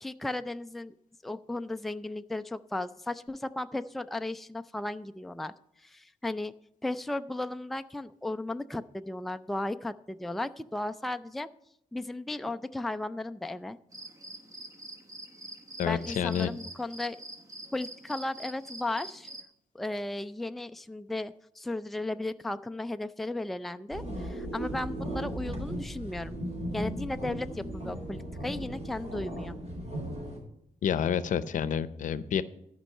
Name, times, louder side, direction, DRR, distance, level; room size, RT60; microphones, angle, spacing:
voice 1, 0.0-0.9 1.2-5.5 5.8-6.5 6.8-11.5 11.9-13.8 15.8-17.2 17.7-19.3 19.7-26.4 26.7-29.6, left 2 dB, ahead, 9 dB, 0.4 m, -35 dB
sound 1, 13.9-19.4, right 2 dB, 25° right, 1.2 m, -45 dB
voice 2, 15.8-16.5 30.8-32.4, left 8 dB, 75° left, 14 dB, 0.6 m, -28 dB
sound 2, 23.9-30.4, equal, 50° right, 4.9 m, -36 dB
13.5 x 5.3 x 6.5 m, 0.77 s
wide cardioid pair, 130°, 13 cm